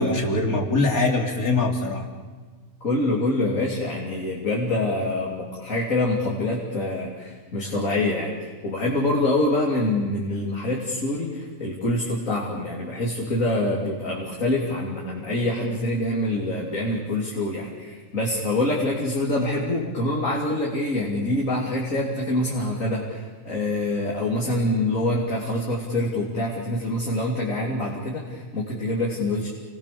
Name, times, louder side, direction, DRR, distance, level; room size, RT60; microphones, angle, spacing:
voice 1, 0.0-2.1, left 2 dB, 85° left, 2 dB, 3.6 m, -22 dB
voice 2, 2.8-29.5, left 1 dB, 65° left, -3 dB, 3.7 m, -25 dB
29.5 x 21.5 x 7.0 m, 1.4 s
omnidirectional pair, 1.5 m